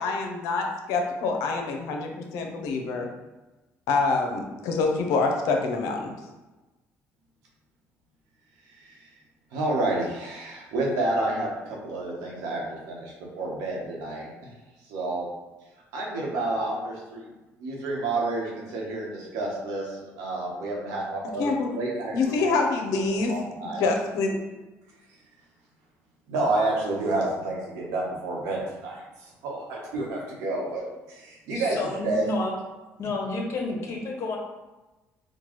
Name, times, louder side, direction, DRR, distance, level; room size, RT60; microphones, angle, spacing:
voice 1, 0.0-3.1 3.9-6.1 21.4-21.7 22.1-23.3 23.8-24.4, left 3 dB, 85° left, 3 dB, 0.6 m, -26 dB
voice 2, 9.5-14.3 14.9-15.3 15.9-17.3 17.6-22.4 23.3-23.8 26.3-29.0 29.4-30.8 31.1-32.2, right 2 dB, 90° right, -3 dB, 1.1 m, -29 dB
voice 3, 31.5-32.5 33.0-34.4, left 2 dB, 55° left, 0 dB, 1.0 m, -30 dB
4.4 x 2.3 x 3.1 m, 1.1 s
cardioid pair, 95°, 6 cm